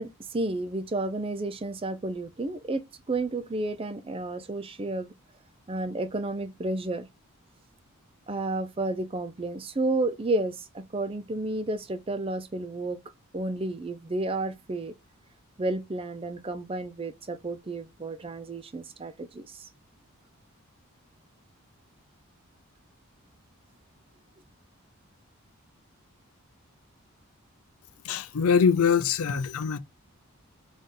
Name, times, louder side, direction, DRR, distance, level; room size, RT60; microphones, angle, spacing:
voice 1, 0.0-5.1 5.7-7.1 8.3-13.0 13.3-14.9 15.6-19.6, right 2 dB, 25° right, 0.4 m, -31 dB
voice 2, 28.1-29.8, left 6 dB, 75° left, 0.4 m, -23 dB
4.0 x 3.5 x 3.7 m
head